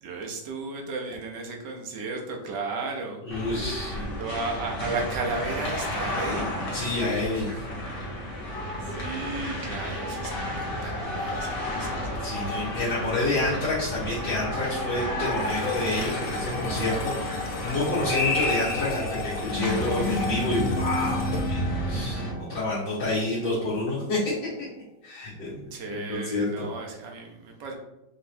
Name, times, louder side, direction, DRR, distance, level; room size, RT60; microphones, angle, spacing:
voice 1, 0.0-3.7 3.9-6.5 8.8-10.3 10.8-12.5 25.2-25.4 25.7-27.7, right 3 dB, 65° right, 1 dB, 1.3 m, -34 dB
voice 2, 3.2-4.0 6.7-7.6 12.2-17.1 17.6-24.2 25.0-26.6, left 2 dB, 65° left, -9 dB, 1.7 m, -28 dB
sound 1, 3.3-22.3, left 1 dB, 40° left, 0.8 m, -31 dB
sound 2, 15.3-23.8, left 3 dB, 85° left, 0.8 m, -36 dB
5.3 x 3.0 x 2.7 m, 0.95 s
omnidirectional pair, 2.2 m